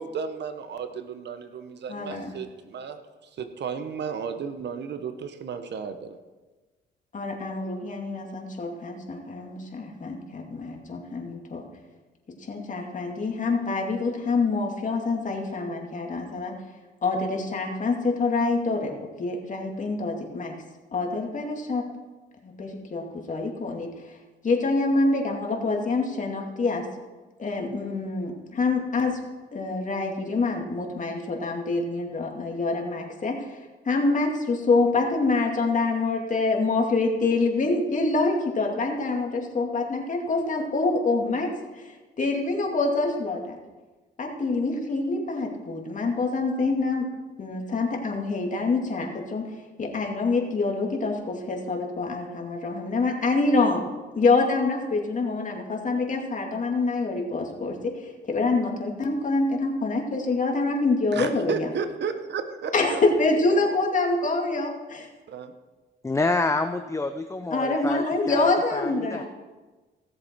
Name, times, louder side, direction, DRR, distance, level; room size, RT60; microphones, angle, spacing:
voice 1, 0.0-3.0 3.4-6.2 61.1-63.0 65.3-65.5, right 6 dB, 60° right, 9 dB, 1.1 m, -33 dB
voice 2, 1.9-2.3 7.1-11.6 12.4-16.6 17.0-18.9 19.2-20.5 20.9-21.9 22.4-24.2 24.4-26.8 27.4-29.2 29.5-43.6 44.2-47.1 47.4-49.5 49.8-53.8 54.1-61.7 62.7-65.1 67.5-69.2, left 3 dB, 40° left, 1 dB, 2.4 m, -26 dB
voice 3, 66.0-69.2, left 3 dB, 15° left, 8 dB, 0.6 m, -28 dB
17.0 x 7.4 x 4.5 m, 1.2 s
cardioid pair, 90°, 20 cm